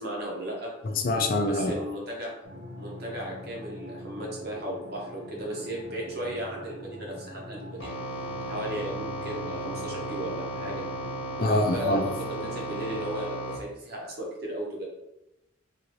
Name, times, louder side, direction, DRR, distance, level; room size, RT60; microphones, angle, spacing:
voice 1, 0.0-0.7 1.4-2.3 2.8-7.9 8.4-10.8 11.4-14.8, right 1 dB, 55° right, -2 dB, 0.9 m, -35 dB
voice 2, 0.8-1.7 11.4-12.0, left 2 dB, 50° left, 4 dB, 0.4 m, -25 dB
sound 1, 2.4-13.0, equal, 80° right, 1.3 m, -43 dB
sound 2, 7.8-13.6, right 1 dB, 85° left, 1.0 m, -35 dB
2.8 x 2.6 x 3.0 m, 0.91 s
head